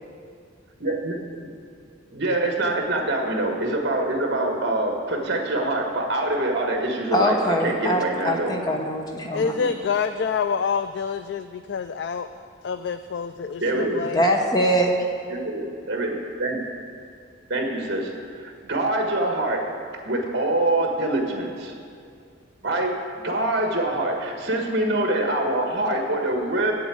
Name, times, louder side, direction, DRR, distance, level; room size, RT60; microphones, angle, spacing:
voice 1, 0.8-1.5 2.1-8.5 9.4-9.7 13.6-14.1 15.3-16.6 17.5-19.6 20.0-21.7 22.6-23.0 23.2-26.7, right 1 dB, 55° right, 2 dB, 1.5 m, -25 dB
voice 2, 7.1-9.5 14.1-15.0, equal, 20° left, 2 dB, 1.0 m, -22 dB
voice 3, 9.3-14.2, left 6 dB, 55° left, 10 dB, 0.3 m, -27 dB
8.3 x 7.8 x 8.6 m, 2.3 s
head